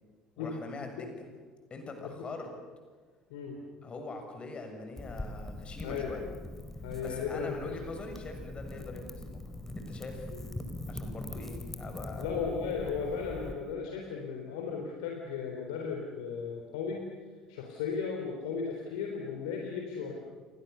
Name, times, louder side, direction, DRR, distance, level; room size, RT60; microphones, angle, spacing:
voice 1, 0.4-1.3 1.7-2.5 3.8-6.2 7.0-9.4 9.8-10.3 10.9-12.3, left 3 dB, 30° left, 5 dB, 6.9 m, -43 dB
voice 2, 3.3-3.6 5.8-6.1 6.8-7.7 10.3-10.4 12.2-17.1 17.5-20.1, left 6 dB, 70° left, 1 dB, 3.8 m, -35 dB
Wind / Fire, 5.0-13.5, left 1 dB, 10° left, 4.1 m, -42 dB
29.5 x 24.5 x 7.0 m, 1.5 s
figure-of-eight pair, 60°, 3 cm